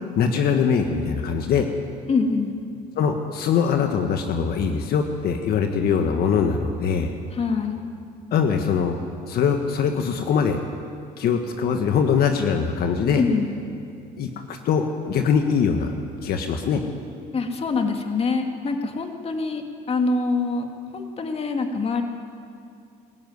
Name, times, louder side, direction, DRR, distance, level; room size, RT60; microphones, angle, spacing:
voice 1, 0.1-1.7 3.0-7.1 8.3-9.0 9.3-10.6 11.2-13.2 14.2-15.9 16.2-16.8, left 6 dB, 65° left, 5 dB, 1.6 m, -22 dB
voice 2, 2.1-2.5 7.3-7.8 13.1-13.6 17.3-20.7 20.9-22.0, left 4 dB, 35° left, 4 dB, 2.2 m, -24 dB
22.0 x 14.0 x 9.6 m, 2.4 s
cardioid pair, 110°, 17 cm